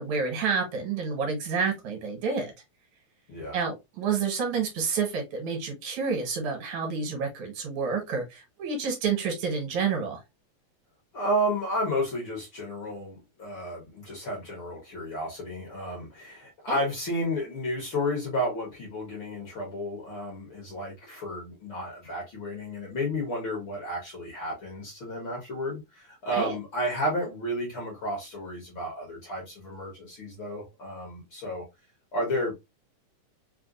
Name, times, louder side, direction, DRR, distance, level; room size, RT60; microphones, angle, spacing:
voice 1, 0.0-2.5 3.5-10.2 16.7-16.8 26.3-26.6, right 5 dB, 70° right, 2.3 m, -29 dB
voice 2, 11.1-31.6 32.1-32.5, equal, 55° left, 1.6 m, -32 dB
4.9 x 2.3 x 2.4 m
omnidirectional pair, 3.5 m